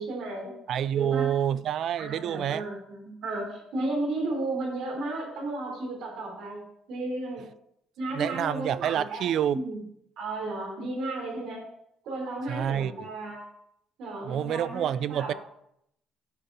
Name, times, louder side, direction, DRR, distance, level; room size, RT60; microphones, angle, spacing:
voice 1, 0.0-0.5 0.9-1.3 2.0-6.6 6.9-7.4 8.0-9.2 9.5-9.8 10.2-11.6 12.0-13.4 14.0-15.3, right 2 dB, 65° right, 3.6 m, -33 dB
voice 2, 0.7-2.6 8.1-9.6 12.5-13.1 14.2-15.3, right 10 dB, 50° right, 0.3 m, -28 dB
9.9 x 5.4 x 4.1 m
cardioid pair, 155°, 0 cm